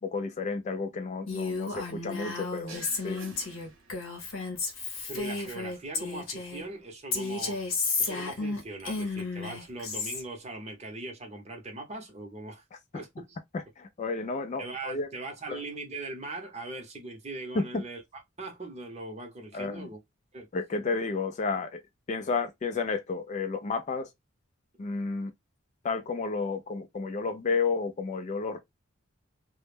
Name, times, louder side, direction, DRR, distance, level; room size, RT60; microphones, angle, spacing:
voice 1, 0.0-3.2 13.5-15.1 15.5-15.6 17.5-17.8 19.5-19.9 20.5-21.8 22.1-24.1 24.8-25.3 25.8-28.6, left 4 dB, 35° left, 0.3 m, -31 dB
Female speech woman speaking, 1.3-6.6 7.1-10.2, left 4 dB, 75° left, 0.7 m, -33 dB
sound 1, 2.7-4.4, right 3 dB, 75° right, 0.8 m, -49 dB
voice 2, 5.1-7.6 8.0-12.6 12.9-13.4 14.6-18.0 18.4-20.0 20.3-20.5, right 2 dB, 35° right, 0.7 m, -40 dB
2.1 x 2.0 x 3.1 m
head